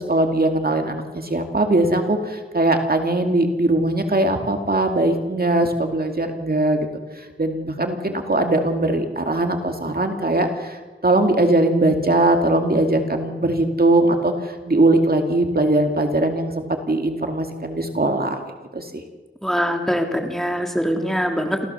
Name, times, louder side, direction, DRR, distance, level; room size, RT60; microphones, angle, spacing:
voice 1, 0.0-6.9 7.1-18.4 18.7-19.0, right 2 dB, 45° right, 5 dB, 2.3 m, -20 dB
voice 2, 19.4-21.7, equal, ahead, 3 dB, 3.0 m, -23 dB
27.5 x 16.0 x 6.9 m, 1.3 s
wide cardioid pair, 70°, 21 cm